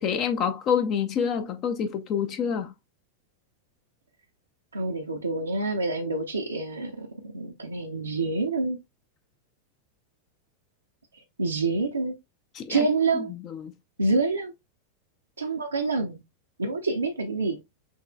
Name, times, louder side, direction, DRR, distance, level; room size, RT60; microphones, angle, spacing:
voice 1, 0.0-2.7 12.5-12.9 13.1-13.7, left 7 dB, 35° left, 0.6 m, -27 dB
voice 2, 4.7-7.1 7.3-8.8 11.4-12.1 12.7-13.3 14.0-14.5 15.4-16.2 16.6-17.6, right 3 dB, 80° right, 0.7 m, -27 dB
6.1 x 3.1 x 2.3 m
figure-of-eight pair, 90°, 0 cm